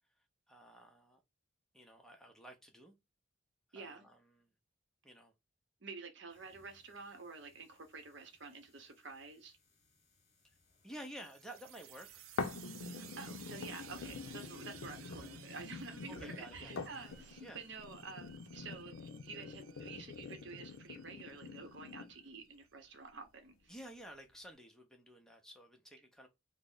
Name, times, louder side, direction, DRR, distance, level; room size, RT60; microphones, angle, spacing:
voice 1, 0.5-1.2 1.7-3.0 3.7-4.5 5.0-5.3 10.8-12.2 16.1-16.8 17.4-17.6 23.7-26.3, right 1 dB, 5° left, 0.6 m, -52 dB
voice 2, 3.7-4.1 5.8-9.6 12.8-23.7, right 4 dB, 55° right, 0.8 m, -50 dB
sound 1, 6.3-18.5, left 1 dB, 35° left, 1.0 m, -64 dB
sound 2, 11.2-22.6, right 11 dB, 85° right, 0.4 m, -57 dB
sound 3, 12.4-22.4 22.9-23.0, left 4 dB, 75° left, 0.5 m, -46 dB
3.2 x 2.0 x 3.8 m
head